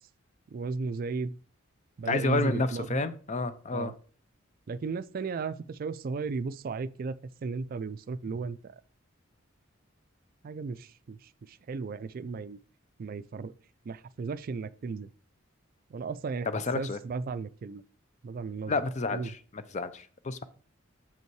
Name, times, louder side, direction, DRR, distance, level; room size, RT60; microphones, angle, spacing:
voice 1, 0.5-1.4 2.0-3.1 3.7-3.9 4.7-7.1 7.4-8.8 10.4-12.6 13.0-13.5 13.8-15.1 15.9-16.5 16.7-17.8 18.2-18.8 19.1-19.3, right 4 dB, 45° right, 0.3 m, -35 dB
voice 2, 2.1-3.9 16.5-17.0 18.7-20.4, left 3 dB, 35° left, 0.6 m, -30 dB
7.2 x 5.5 x 4.6 m
head